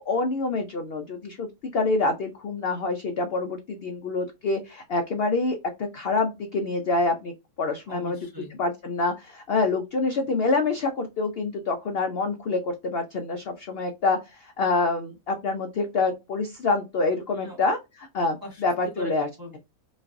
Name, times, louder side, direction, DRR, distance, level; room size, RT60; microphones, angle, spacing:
voice 1, 0.1-1.5 1.7-7.3 7.6-8.2 8.6-19.3, left 3 dB, 65° left, 5 dB, 0.5 m, -26 dB
voice 2, 7.9-8.5 17.3-17.6 18.4-19.1 19.4-19.6, equal, 20° right, 2 dB, 0.7 m, -40 dB
5.0 x 2.5 x 2.5 m, 0.24 s
omnidirectional pair, 1.6 m